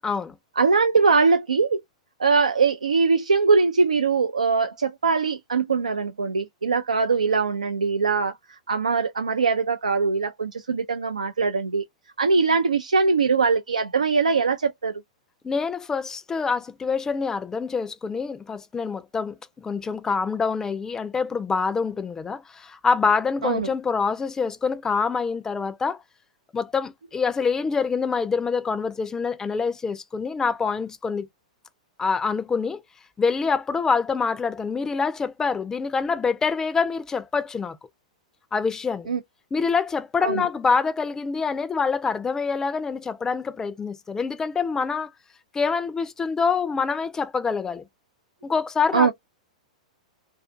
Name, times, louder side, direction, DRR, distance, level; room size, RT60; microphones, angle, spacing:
voice 1, 0.0-0.3 15.4-26.0 26.5-31.3 32.0-32.8 33.2-37.7 38.5-39.1 39.5-45.1 45.5-47.8 48.4-49.1, left 5 dB, 15° left, 0.4 m, -25 dB
voice 2, 0.6-1.8 2.2-8.3 8.7-11.8 12.2-14.9 23.4-23.7 39.1-39.2 40.2-40.4 48.9-49.1, right 4 dB, 90° right, 0.3 m, -21 dB
2.4 x 2.4 x 2.4 m
hypercardioid pair, 110°, 4 cm